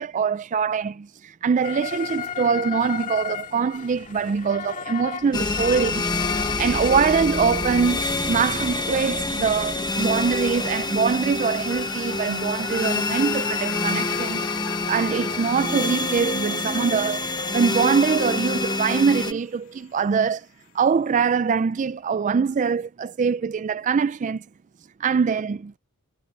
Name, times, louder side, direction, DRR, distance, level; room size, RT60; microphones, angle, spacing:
voice 1, 0.0-6.1 6.3-8.0 8.3-14.4 14.9-17.3 17.5-20.4 20.7-24.4 25.0-25.7, right 6 dB, 35° right, 0.3 m, -23 dB
sound 1, 1.6-18.8, left 6 dB, 35° left, 2.4 m, -38 dB
sound 2, 5.3-19.3, left 3 dB, 20° left, 1.1 m, -27 dB
sound 3, 7.9-20.3 20.6-20.7, left 5 dB, 65° left, 2.3 m, -42 dB
head